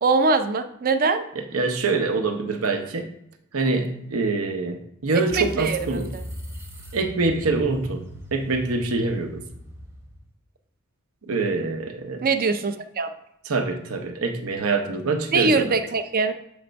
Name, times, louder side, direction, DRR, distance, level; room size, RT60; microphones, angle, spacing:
voice 1, 0.0-1.3 5.3-6.2 12.2-13.1 15.3-16.3, right 4 dB, 45° right, 9 dB, 0.5 m, -22 dB
voice 2, 1.3-3.1 3.5-6.2 6.9-8.1 8.3-9.4 11.3-12.3 13.5-15.8, right 3 dB, 80° right, 6 dB, 0.8 m, -25 dB
sound 1, 5.3-10.3, equal, 15° right, 0.8 m, -39 dB
7.0 x 3.4 x 5.2 m, 0.76 s
head